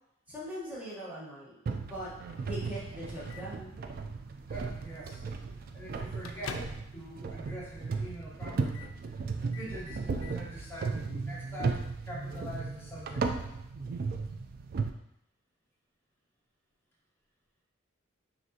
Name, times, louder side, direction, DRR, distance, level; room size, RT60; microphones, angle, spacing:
voice 1, 0.3-2.1 2.4-3.8, equal, 10° right, -8 dB, 1.1 m, -41 dB
sound 1, 1.7-14.9, right 4 dB, 45° right, 0.3 m, -36 dB
Microwave oven, 2.3-3.7 4.6-4.8 5.2-5.3 5.7-7.0 7.3-7.4 8.1-8.4 8.7-9.0 9.3-10.4, left 5 dB, 90° left, 0.4 m, -47 dB
voice 2, 4.5-5.2 5.7-9.0 9.4-13.6, right 1 dB, 10° left, -6 dB, 1.0 m, -44 dB
6.0 x 2.7 x 2.8 m, 0.78 s
head